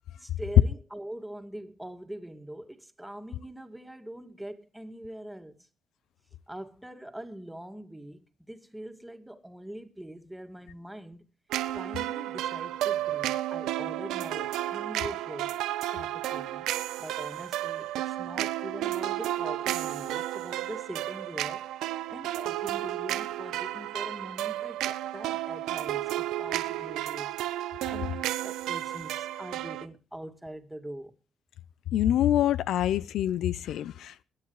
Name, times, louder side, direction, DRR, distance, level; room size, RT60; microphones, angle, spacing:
voice 1, 0.2-5.5 6.5-11.3 11.7-15.5 15.9-16.7 17.0-21.6 22.1-27.3 27.9-28.1 28.4-31.1, right 1 dB, 5° right, 2.2 m, -43 dB
sound 1, 11.5-29.9, right 14 dB, 90° right, 0.8 m, -32 dB
voice 2, 31.9-34.2, left 11 dB, 80° left, 0.6 m, -26 dB
22.0 x 9.5 x 3.1 m
cardioid pair, 90°, 0 cm